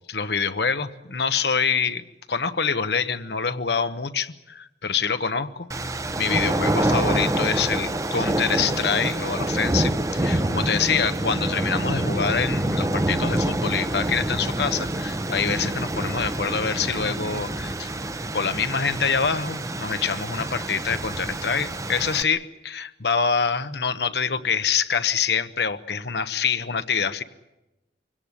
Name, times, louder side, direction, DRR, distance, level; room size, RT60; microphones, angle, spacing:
voice 1, 0.1-17.9 18.3-27.2, left 6 dB, 70° left, 10 dB, 1.1 m, -26 dB
sound 1, 5.7-22.2, right 1 dB, 20° right, 0.8 m, -26 dB
24.0 x 17.5 x 9.8 m, 0.99 s
head